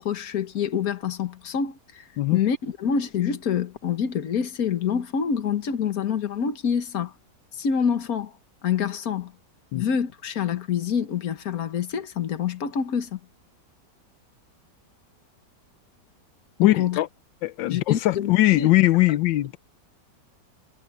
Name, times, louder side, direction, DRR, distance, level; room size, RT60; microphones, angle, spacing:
voice 1, 0.0-2.0 2.3-7.1 7.5-8.3 8.6-9.3 9.7-13.2 16.6-17.0 17.7-18.7, left 7 dB, 55° left, 1.8 m, -26 dB
voice 2, 16.6-17.1 17.4-19.6, left 17 dB, 90° left, 1.4 m, -20 dB
omnidirectional pair, 2.0 m